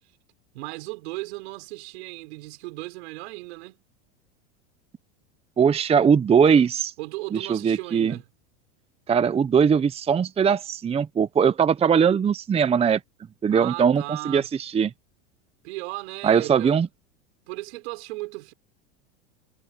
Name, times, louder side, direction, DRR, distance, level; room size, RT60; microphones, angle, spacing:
voice 1, 0.5-3.8 7.0-8.2 13.5-14.5 15.6-16.8 17.5-18.5, right 23 dB, 70° right, 6.1 m, -36 dB
voice 2, 5.6-6.9 7.3-8.1 9.1-13.0 13.4-14.9 16.2-16.9, right 7 dB, 15° right, 0.8 m, -20 dB
supercardioid pair, 120°, 34 cm